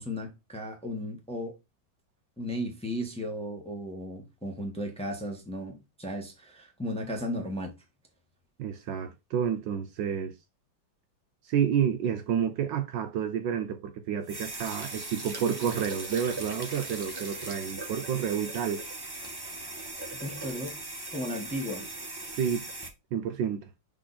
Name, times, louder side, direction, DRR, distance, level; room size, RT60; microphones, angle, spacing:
voice 1, 0.0-1.5 2.4-7.7 20.2-20.8 21.1-21.9, equal, 5° left, 1.1 m, -35 dB
voice 2, 8.6-10.3 11.4-18.8 22.4-22.7 23.1-23.7, right 8 dB, 70° right, 1.3 m, -30 dB
sound 1, 14.2-22.9, right 2 dB, 15° right, 0.8 m, -39 dB
6.3 x 3.7 x 4.1 m
omnidirectional pair, 2.2 m